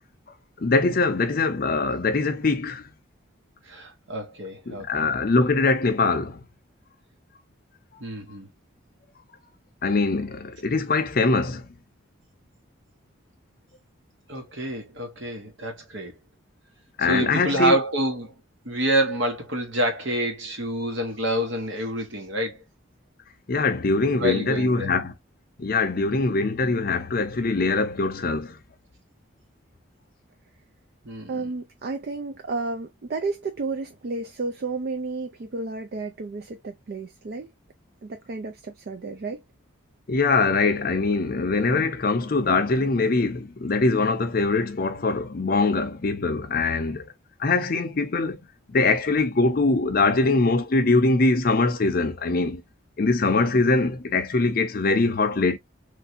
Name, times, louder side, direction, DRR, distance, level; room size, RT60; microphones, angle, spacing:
voice 1, 0.6-2.8 4.7-6.4 9.8-11.7 17.0-17.8 23.5-25.1 25.6-28.6 40.1-47.1 47.4-48.4 48.7-52.6 53.0-55.6, left 3 dB, 45° left, 0.5 m, -22 dB
voice 2, 3.7-5.1 8.0-8.5 14.3-16.2 17.1-18.3 18.6-22.6 24.2-24.9 31.0-31.5, right 1 dB, 70° right, 1.2 m, -27 dB
voice 3, 31.3-37.5 38.0-39.4, right 3 dB, 50° right, 0.3 m, -32 dB
3.2 x 2.6 x 2.5 m
head